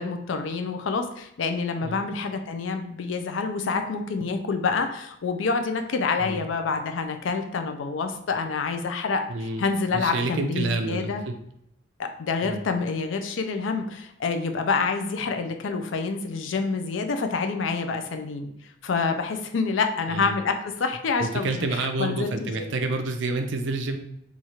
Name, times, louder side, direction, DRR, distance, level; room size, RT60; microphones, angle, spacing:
voice 1, 0.0-9.2 9.6-11.2 12.0-18.5 18.8-22.7, left 4 dB, 80° left, 6 dB, 0.4 m, -27 dB
voice 2, 9.3-9.6 9.9-11.3 12.4-12.6 20.1-20.3 21.2-24.0, right 3 dB, 70° right, 5 dB, 0.4 m, -28 dB
3.0 x 2.4 x 4.1 m, 0.77 s
head